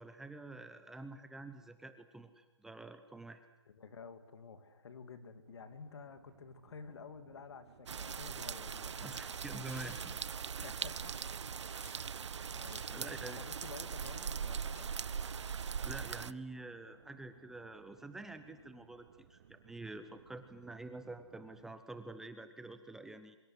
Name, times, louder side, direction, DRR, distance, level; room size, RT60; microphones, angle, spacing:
voice 1, 0.0-3.4 9.0-10.0 10.6-10.7 12.4-13.4 15.8-23.4, right 2 dB, 5° right, 9 dB, 0.8 m, -48 dB
voice 2, 3.7-9.2 10.6-11.1 12.5-14.9, left 5 dB, 65° left, 10 dB, 2.7 m, -51 dB
sound 1, 5.4-21.6, right 7 dB, 50° right, 2.3 m, -64 dB
sound 2, 7.9-16.3, right 7 dB, 80° right, 0.8 m, -41 dB
Tearing, 8.8-15.6, left 2 dB, 15° left, 5.7 m, -61 dB
24.5 x 23.0 x 8.0 m, 1.0 s
hypercardioid pair, 160°, 15 cm